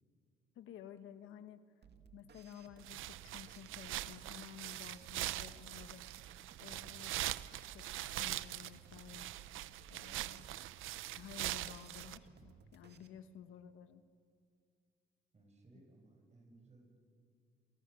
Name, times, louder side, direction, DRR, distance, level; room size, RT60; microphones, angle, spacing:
voice 1, 0.5-1.6 2.1-6.0 6.6-7.2 7.5-7.9 8.1-9.3 9.9-10.5 11.1-14.0 15.7-15.8, left 9 dB, 80° left, 10 dB, 1.3 m, -53 dB
sound 1, 1.8-13.1, right 5 dB, 60° right, 2.0 m, -61 dB
sound 2, 2.8-12.2, right 15 dB, 90° right, 0.7 m, -42 dB
voice 2, 15.3-17.0, right 2 dB, 35° right, 3 dB, 7.5 m, -62 dB
28.0 x 28.0 x 7.0 m, 2.3 s
cardioid pair, 90°, 20 cm